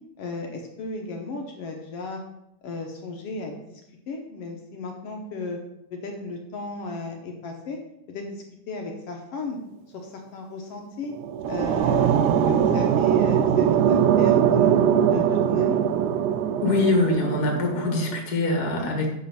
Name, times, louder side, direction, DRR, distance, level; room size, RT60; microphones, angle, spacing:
voice 1, 0.2-2.2 2.6-3.8 4.1-5.6 6.0-7.8 8.1-9.6 9.9-11.1 11.5-12.2 12.5-14.8 15.1-15.8 18.7-19.1, left 3 dB, 65° left, 2 dB, 1.7 m, -34 dB
sound 1, 11.0-18.2, right 9 dB, 90° right, 2.1 m, -21 dB
voice 2, 16.6-19.1, left 2 dB, 40° left, 1 dB, 1.8 m, -23 dB
7.8 x 5.6 x 5.7 m, 0.83 s
omnidirectional pair, 3.5 m